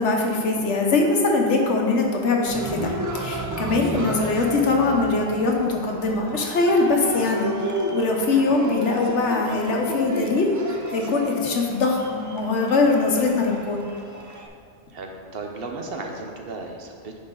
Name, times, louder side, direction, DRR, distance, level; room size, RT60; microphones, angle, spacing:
voice 1, 0.0-7.5 7.9-13.9, left 3 dB, 80° left, 0 dB, 1.3 m, -22 dB
Cheering, 2.5-14.5, right 1 dB, 30° right, 0.3 m, -33 dB
voice 2, 14.9-17.2, right 3 dB, 60° right, 2 dB, 0.9 m, -35 dB
10.0 x 4.1 x 3.8 m, 2.4 s
omnidirectional pair, 1.2 m